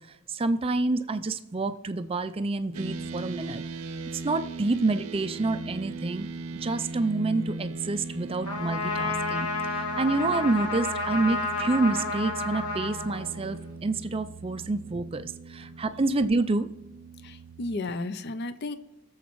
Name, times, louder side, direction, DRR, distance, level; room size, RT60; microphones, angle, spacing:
voice 1, 0.3-3.6 4.1-6.3 6.6-16.7, right 3 dB, 25° right, 10 dB, 0.4 m, -28 dB
sound 1, 2.7-17.8, right 3 dB, 85° right, 0.7 m, -39 dB
Trumpet, 8.4-13.7, left 3 dB, 90° left, 1.6 m, -31 dB
voice 2, 17.2-18.8, left 2 dB, 50° left, 12 dB, 0.5 m, -34 dB
21.5 x 7.2 x 3.1 m, 1.1 s
head